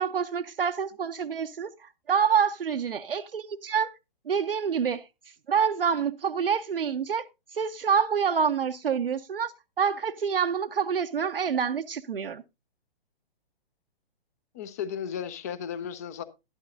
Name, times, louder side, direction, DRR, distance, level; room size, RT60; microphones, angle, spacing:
voice 1, 0.0-3.9 4.3-5.0 5.5-7.2 7.5-12.4, right 7 dB, 65° right, 0.6 m, -27 dB
voice 2, 14.5-16.2, left 8 dB, 15° left, 0.4 m, -34 dB
12.0 x 11.0 x 2.5 m
figure-of-eight pair, 125°, 30 cm